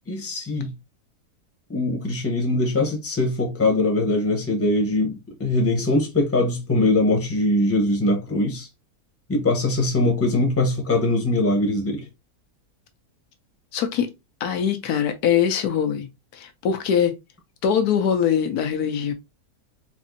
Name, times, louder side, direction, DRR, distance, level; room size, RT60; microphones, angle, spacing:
voice 1, 0.1-0.7 1.7-8.7 9.3-12.0, left 2 dB, 10° left, 0.8 m, -22 dB
voice 2, 13.7-14.1 14.4-17.1 17.6-19.1, left 8 dB, 80° left, 1.2 m, -22 dB
4.1 x 2.6 x 2.6 m
omnidirectional pair, 1.6 m